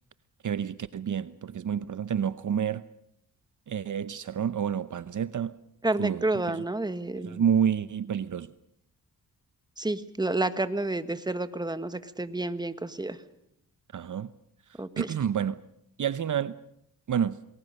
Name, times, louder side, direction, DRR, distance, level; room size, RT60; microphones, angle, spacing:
voice 1, 0.4-2.8 3.7-5.5 6.0-6.6 7.2-8.5 13.9-14.3 15.0-15.6 16.0-16.5 17.1-17.4, right 8 dB, 55° right, 0.8 m, -29 dB
voice 2, 5.8-7.4 9.8-13.2 14.8-15.1, right 2 dB, 10° right, 1.6 m, -30 dB
29.0 x 20.5 x 6.7 m
cardioid pair, 80°, 37 cm